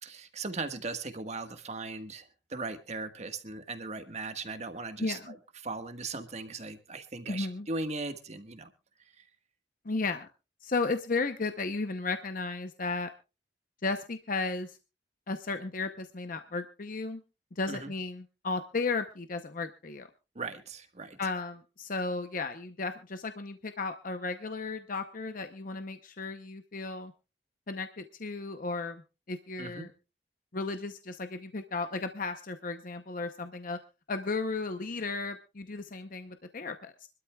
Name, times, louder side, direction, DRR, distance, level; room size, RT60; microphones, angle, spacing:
voice 1, 0.0-5.4 5.6-8.7 9.2-9.3 17.7-17.9 20.3-21.2 29.6-29.9, right 3 dB, 40° right, 1.5 m, -38 dB
voice 2, 7.3-7.7 9.8-10.3 10.6-13.1 13.8-14.8 15.3-17.2 17.6-20.1 21.2-27.1 27.7-29.0 29.3-29.9 30.5-33.8 34.1-37.1, left 3 dB, 50° left, 0.8 m, -34 dB
25.5 x 12.5 x 2.3 m
head